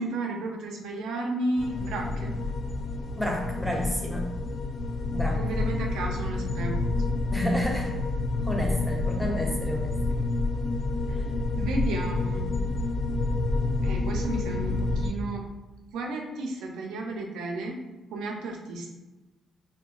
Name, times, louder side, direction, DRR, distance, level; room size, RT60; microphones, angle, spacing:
voice 1, 0.0-2.3 5.3-6.8 11.1-11.2 11.6-12.5 13.8-15.4 15.9-17.8 18.1-18.9, right 2 dB, 85° right, 1 dB, 0.4 m, -32 dB
sound 1, 1.6-15.1, left 2 dB, 55° left, 0.3 m, -28 dB
voice 2, 3.2-4.3 5.1-5.4 7.3-8.0 8.4-9.9, equal, ahead, 0 dB, 0.5 m, -30 dB
2.8 x 2.2 x 2.4 m, 1.1 s
cardioid pair, 90°, 0 cm